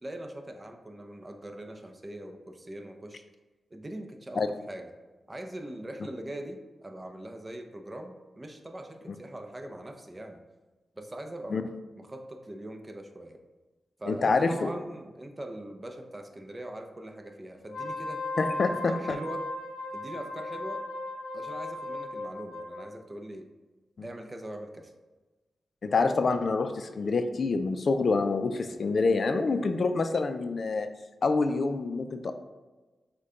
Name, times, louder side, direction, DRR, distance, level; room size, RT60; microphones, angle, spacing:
voice 1, 0.0-3.2 3.7-4.9 5.3-10.4 11.0-11.7 12.0-13.4 14.0-18.2 18.7-19.4 19.9-20.9 21.3-23.5 24.0-24.9, right 1 dB, 25° right, 5 dB, 0.6 m, -41 dB
voice 2, 14.1-14.7 18.4-19.2 24.0-24.1 25.8-30.9 31.2-32.3, left 4 dB, 60° left, 8 dB, 0.4 m, -27 dB
Wind instrument woodwind instrument, 17.6-22.9, left 2 dB, 85° left, 0.7 m, -36 dB
6.5 x 2.2 x 3.7 m, 1.2 s
cardioid pair, 65°, 0 cm